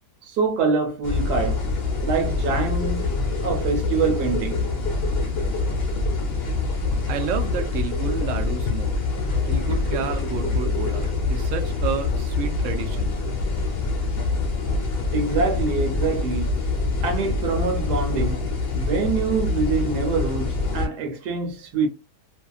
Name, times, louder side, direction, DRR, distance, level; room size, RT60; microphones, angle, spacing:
voice 1, 0.2-1.6 2.0-3.1 3.4-4.7 15.1-16.5 17.0-18.4 18.7-21.9, right 4 dB, 90° right, 1.3 m, -25 dB
sound 1, 1.0-20.9, left 3 dB, 50° left, 0.8 m, -25 dB
voice 2, 7.1-9.0 9.5-13.2, right 6 dB, 65° right, 0.8 m, -30 dB
2.7 x 2.5 x 2.3 m
omnidirectional pair, 1.7 m